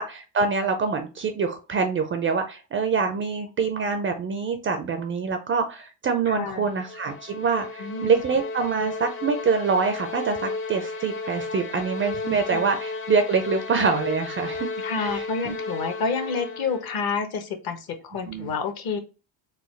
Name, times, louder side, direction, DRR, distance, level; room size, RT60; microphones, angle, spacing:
voice 1, 0.0-14.7 14.9-15.5 18.3-18.6, right 5 dB, 30° right, 7 dB, 0.4 m, -25 dB
voice 2, 6.3-6.7 7.8-8.2 12.2-12.6 14.8-19.0, left 5 dB, 50° left, 6 dB, 1.0 m, -29 dB
sound 1, 6.4-17.0, left 3 dB, 25° left, 0.7 m, -34 dB
4.0 x 2.3 x 3.1 m, 0.31 s
supercardioid pair, 105°, 48 cm